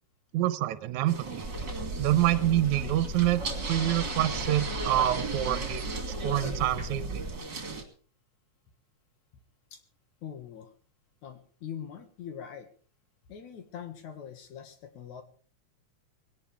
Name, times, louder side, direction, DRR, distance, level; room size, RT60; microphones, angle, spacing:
voice 1, 0.3-1.5 2.0-3.4 3.7-5.8 6.2-7.2, right 13 dB, 80° right, 13 dB, 2.2 m, -26 dB
sound 1, 1.1-7.8, right 3 dB, 40° right, 3.0 m, -36 dB
sound 2, 1.4-7.4, equal, 20° right, 4.2 m, -38 dB
voice 2, 10.2-10.7 11.2-12.7 13.3-15.2, left 8 dB, 75° left, 7 dB, 3.0 m, -42 dB
20.0 x 17.5 x 3.5 m, 0.43 s
omnidirectional pair, 3.4 m